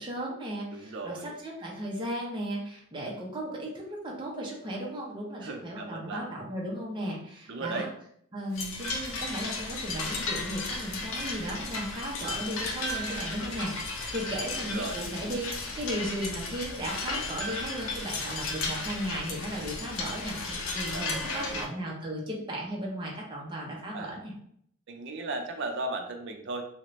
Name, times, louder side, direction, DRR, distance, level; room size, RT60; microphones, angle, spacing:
voice 1, 0.0-7.9 8.3-24.3, equal, 20° right, -3 dB, 0.7 m, -36 dB
voice 2, 0.7-1.4 5.4-6.2 7.5-7.9 14.7-15.0 19.6-19.7 20.9-21.7 23.9-24.2 24.9-26.6, right 2 dB, 60° right, 4 dB, 0.5 m, -36 dB
sound 1, 8.5-21.7, left 3 dB, 70° left, 0.6 m, -34 dB
2.8 x 2.4 x 3.1 m, 0.67 s
head